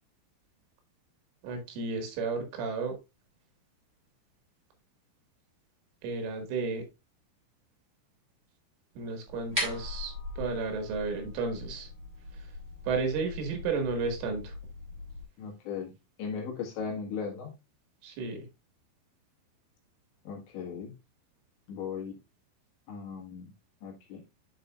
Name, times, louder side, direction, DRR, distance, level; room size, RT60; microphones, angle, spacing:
voice 1, 1.4-2.9 6.0-6.8 9.0-11.9 12.9-14.5 18.0-18.4, right 4 dB, 75° right, 5 dB, 4.3 m, -32 dB
sound 1, 9.3-15.2, left 2 dB, 15° right, 2.0 m, -39 dB
voice 2, 15.4-15.9 16.2-17.5 20.3-20.9 21.7-22.2 22.9-23.5 23.8-24.2, left 6 dB, 70° left, 0 dB, 3.7 m, -37 dB
10.5 x 5.4 x 2.4 m, 0.24 s
omnidirectional pair, 5.8 m